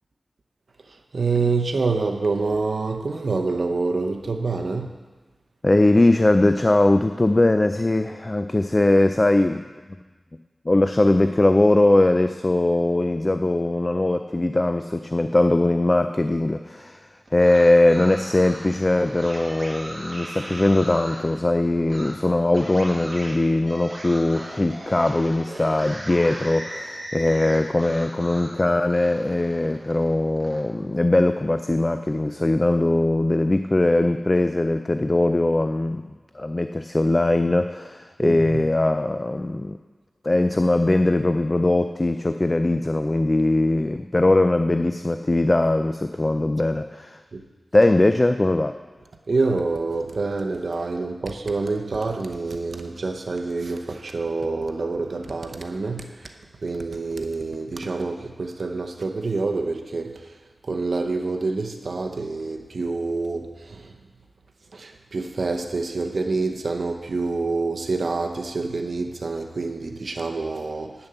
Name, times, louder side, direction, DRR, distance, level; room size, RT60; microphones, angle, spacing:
voice 1, 0.9-4.9 38.2-38.6 47.3-47.4 49.3-60.4 60.6-64.0 64.7-71.1, right 3 dB, 70° right, 4 dB, 0.8 m, -27 dB
voice 2, 5.6-9.6 10.7-17.0 17.3-36.0 36.3-39.8 40.2-47.2 47.7-48.8, left 2 dB, 25° left, 8 dB, 0.4 m, -20 dB
sound 1, 17.3-21.3 21.9-22.1 22.5-28.6 28.9-30.6, right 1 dB, 40° right, 2.0 m, -38 dB
9.7 x 7.0 x 6.8 m, 1.3 s
wide cardioid pair, 100°, 0 cm